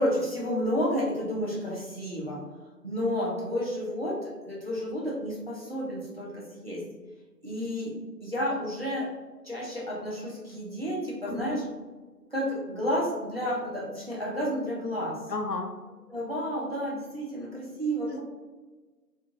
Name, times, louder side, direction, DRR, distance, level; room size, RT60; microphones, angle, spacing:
voice 1, 0.0-2.4 2.8-6.9 7.4-9.1 9.4-11.6 12.3-15.3 16.1-18.2, equal, 35° right, -5 dB, 0.7 m, -31 dB
voice 2, 11.3-11.6 15.3-15.7 18.1-18.2, left 3 dB, 75° left, 3 dB, 0.8 m, -32 dB
3.7 x 2.5 x 2.9 m, 1.3 s
figure-of-eight pair, 165°, 50 cm